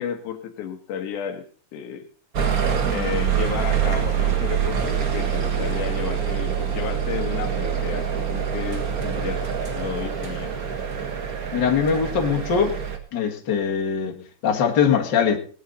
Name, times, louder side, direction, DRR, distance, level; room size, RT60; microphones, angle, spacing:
voice 1, 0.0-1.4 1.7-2.1 2.9-9.5 9.8-10.5, left 8 dB, 85° left, 6 dB, 2.8 m, -32 dB
sound 1, 2.3-13.0, right 8 dB, 45° right, 1.3 m, -25 dB
voice 2, 11.5-12.7 13.1-15.4, left 7 dB, 40° left, 0 dB, 2.3 m, -22 dB
19.0 x 9.4 x 4.1 m, 0.42 s
omnidirectional pair, 3.4 m